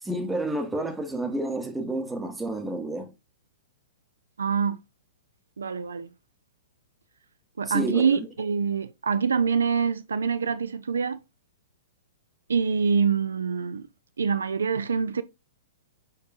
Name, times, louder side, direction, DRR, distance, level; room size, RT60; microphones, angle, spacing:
voice 1, 0.0-3.1 7.7-8.2, right 1 dB, 5° right, 0.8 m, -30 dB
voice 2, 4.4-4.8 5.6-6.1 7.6-11.2 12.5-13.9 14.2-15.2, right 6 dB, 70° right, 0.3 m, -25 dB
4.6 x 4.6 x 2.5 m
figure-of-eight pair, 110°, 0 cm